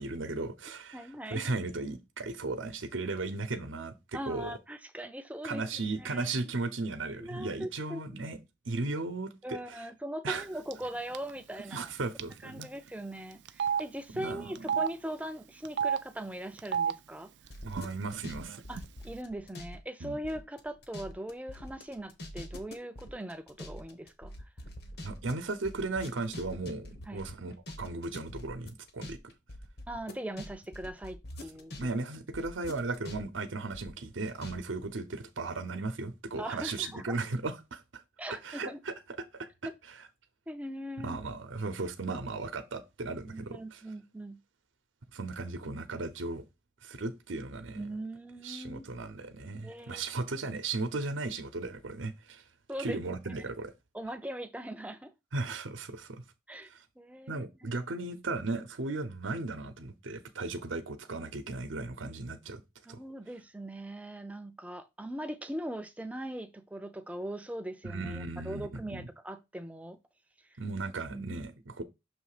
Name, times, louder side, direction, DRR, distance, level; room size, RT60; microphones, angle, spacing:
voice 1, 0.0-3.9 4.3-4.6 5.4-8.4 8.7-9.9 10.2-10.5 11.7-12.7 14.1-14.8 17.6-18.6 20.0-20.2 25.0-29.2 31.8-38.0 38.3-38.9 39.3-39.5 40.0-40.1 41.0-43.8 45.1-46.4 46.8-47.8 48.4-52.4 52.8-53.7 55.3-56.2 56.7-56.8 57.3-62.6 62.9-63.0 67.8-69.1 70.6-71.8, right 3 dB, 80° right, 0.8 m, -36 dB
voice 2, 0.9-1.5 4.1-6.3 7.2-8.4 9.4-11.9 12.4-17.3 18.7-24.3 27.1-27.2 29.9-32.0 36.4-37.2 38.2-38.8 40.5-41.2 43.3-44.4 47.8-48.9 49.6-50.0 52.7-53.0 53.9-55.1 56.5-56.7 57.0-57.8 62.9-70.0 70.5-70.6 71.1-71.4, right 1 dB, 5° right, 0.5 m, -40 dB
Telephone, 10.7-10.9 11.1-11.3 12.2-12.3 12.6-12.7 13.5-13.8 14.5-14.9 15.6-16.0 16.6-16.9 17.7-17.8 18.1-18.8, right 7 dB, 60° right, 0.4 m, -30 dB
sound 1, 17.5-19.8 20.0-31.9 32.1-34.6 34.8-34.9, left 1 dB, 55° left, 1.1 m, -45 dB
6.3 x 3.2 x 4.9 m
head